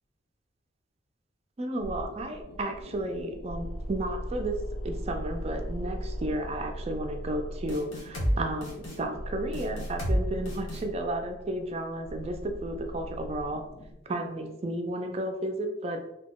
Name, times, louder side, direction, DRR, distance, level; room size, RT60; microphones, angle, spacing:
voice 1, 1.6-4.6 4.8-13.6 14.1-16.0, right 1 dB, 30° right, 5 dB, 0.3 m, -33 dB
sound 1, 1.8-14.0, equal, 60° left, 0.5 m, -39 dB
sound 2, 7.7-8.3 8.6-9.0 9.5-10.2 10.5-10.8, equal, 85° left, 1.0 m, -29 dB
2.8 x 2.1 x 3.5 m, 0.87 s
head